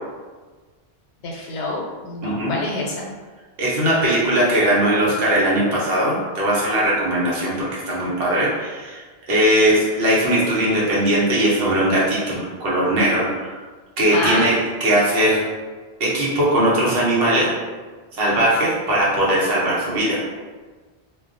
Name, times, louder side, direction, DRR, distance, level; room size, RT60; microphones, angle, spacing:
voice 1, 1.2-3.1 14.1-14.5, left 2 dB, 85° left, -2 dB, 0.9 m, -26 dB
voice 2, 2.2-2.5 3.6-9.0 9.3-13.5 14.0-15.4 16.0-17.5 18.2-20.2, right 1 dB, 65° right, -6 dB, 0.9 m, -19 dB
2.2 x 2.1 x 2.5 m, 1.4 s
omnidirectional pair, 1.1 m